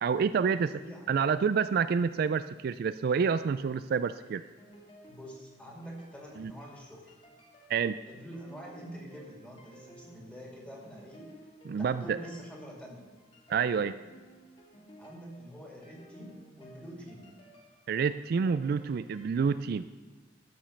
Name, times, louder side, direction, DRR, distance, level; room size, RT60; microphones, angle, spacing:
voice 1, 0.0-0.8 1.1-4.4 6.4-6.5 7.7-8.0 11.7-12.2 13.5-14.0 17.9-19.8, right 6 dB, 55° right, 12 dB, 0.3 m, -28 dB
sound 1, 4.2-19.5, right 1 dB, 30° left, 2.0 m, -56 dB
voice 2, 5.1-7.1 8.1-11.3 11.8-13.1 15.0-17.3, equal, 5° left, -2 dB, 2.5 m, -46 dB
13.0 x 5.2 x 7.1 m, 1.3 s
head